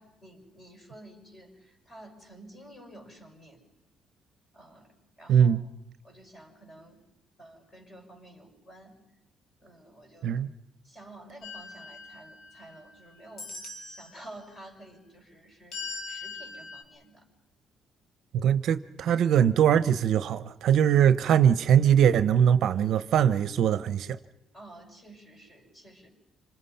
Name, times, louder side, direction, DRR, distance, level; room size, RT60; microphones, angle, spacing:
voice 1, 0.0-3.6 4.5-5.7 6.0-7.0 7.4-9.0 9.6-10.3 10.8-13.6 13.9-15.8 16.1-17.3 22.7-23.0 24.5-26.1, right 1 dB, 20° left, 6.3 m, -50 dB
sound 1, 11.4-12.9 13.4-14.2 15.7-16.8, left 3 dB, 50° left, 4.6 m, -41 dB
voice 2, 18.3-24.2, right 9 dB, 60° right, 0.8 m, -22 dB
27.0 x 26.5 x 5.7 m
cardioid pair, 150°, 0 cm